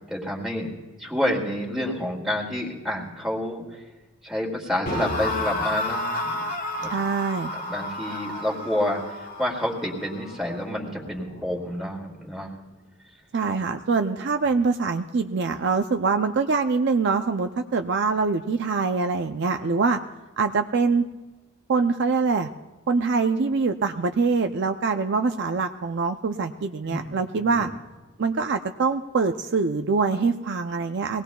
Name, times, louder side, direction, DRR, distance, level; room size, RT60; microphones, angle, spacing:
voice 1, 0.1-0.7 1.0-3.9 4.2-6.4 6.8-6.9 7.5-12.6 26.9-27.1 27.4-27.7, left 1 dB, ahead, -2 dB, 2.1 m, -29 dB
sound 1, 4.9-12.0, left 1 dB, 40° left, 1.3 m, -32 dB
voice 2, 6.9-7.5 13.3-20.0 20.4-21.0 21.7-22.5 22.9-27.7 28.2-31.2, right 4 dB, 50° right, 6 dB, 0.5 m, -24 dB
22.0 x 18.0 x 2.3 m, 1.2 s
head